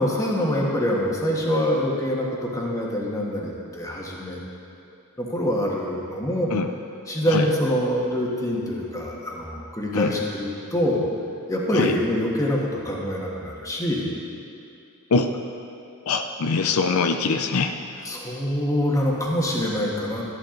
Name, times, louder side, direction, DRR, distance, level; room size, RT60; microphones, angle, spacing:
voice 1, 0.0-4.4 5.2-6.5 7.1-11.0 11.5-14.1 18.0-20.2, equal, 15° left, -3 dB, 1.6 m, -25 dB
voice 2, 16.0-18.0, left 4 dB, 80° left, 7 dB, 0.6 m, -23 dB
13.0 x 11.5 x 3.9 m, 2.6 s
head